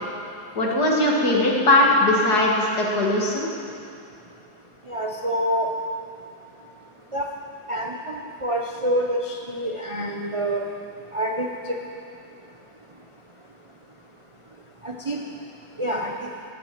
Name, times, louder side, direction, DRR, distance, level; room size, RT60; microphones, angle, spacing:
voice 1, 0.6-3.5, left 1 dB, 55° left, -2 dB, 2.5 m, -20 dB
voice 2, 4.9-5.7 7.1-7.3 7.7-10.6 11.1-11.5 14.8-15.2 15.8-16.1, equal, 50° right, 0 dB, 0.3 m, -26 dB
17.0 x 10.5 x 5.9 m, 2.4 s
omnidirectional pair, 2.1 m